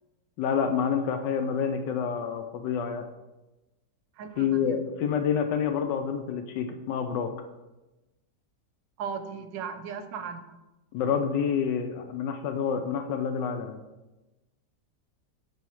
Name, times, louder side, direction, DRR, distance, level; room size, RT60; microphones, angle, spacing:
voice 1, 0.4-3.0 4.4-7.3 10.9-13.8, left 7 dB, 80° left, 7 dB, 1.3 m, -28 dB
voice 2, 4.1-4.8 9.0-10.5, right 6 dB, 90° right, 9 dB, 1.3 m, -37 dB
9.3 x 3.4 x 4.6 m, 1.0 s
omnidirectional pair, 1.9 m